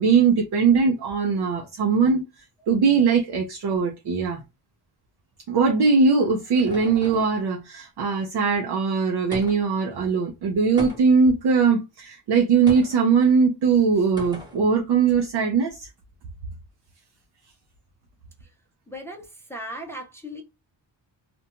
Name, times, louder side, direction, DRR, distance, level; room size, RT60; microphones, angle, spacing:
voice 1, 0.0-4.4 5.5-15.9, right 5 dB, 60° right, 0.6 m, -21 dB
sound 1, 5.9-7.4 9.3-9.8 10.8-11.3 12.7-13.0 14.2-14.6, equal, 10° right, 0.8 m, -38 dB
voice 2, 18.9-20.4, equal, 5° left, 0.4 m, -37 dB
2.4 x 2.2 x 2.8 m
wide cardioid pair, 160°, 45 cm